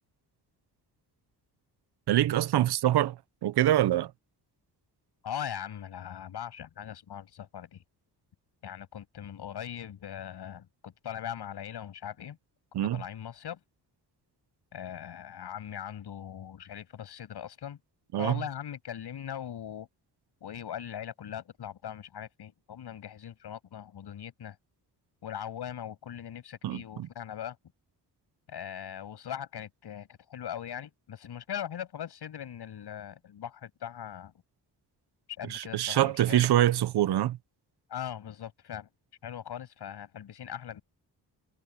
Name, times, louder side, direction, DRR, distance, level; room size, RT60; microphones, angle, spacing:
voice 1, 2.1-3.2 3.4-4.1 12.7-13.0 18.1-18.4 26.6-27.1 35.5-37.4, right 13 dB, 70° right, 0.9 m, -25 dB
voice 2, 5.2-7.8 8.6-12.4 12.7-13.6 14.7-17.8 18.2-19.9 20.4-24.6 25.2-27.6 28.5-34.3 35.3-36.5 37.9-38.9 39.2-40.8, left 9 dB, 70° left, 7.5 m, -40 dB
cardioid pair, 105°, 41 cm